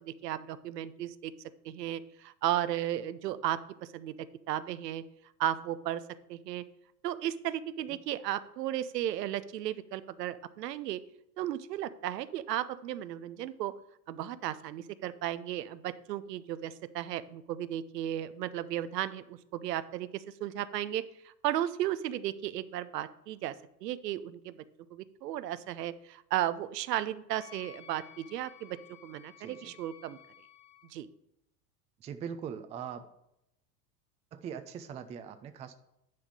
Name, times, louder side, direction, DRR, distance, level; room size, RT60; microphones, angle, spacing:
voice 1, 0.0-1.3 1.6-3.6 3.9-4.1 4.5-5.0 5.4-6.0 6.3-6.6 7.0-11.0 11.4-13.7 14.1-23.5 23.8-24.6 24.9-28.8 29.0-30.2 30.9-31.1, right 12 dB, 75° right, 14 dB, 0.6 m, -35 dB
Wind instrument woodwind instrument, 27.3-30.9, left 13 dB, 70° left, 0.9 m, -54 dB
voice 2, 29.4-29.8 32.0-33.0 34.3-35.8, right 7 dB, 15° right, 10 dB, 0.3 m, -41 dB
10.5 x 3.6 x 6.2 m, 0.82 s
hypercardioid pair, 80°, 49 cm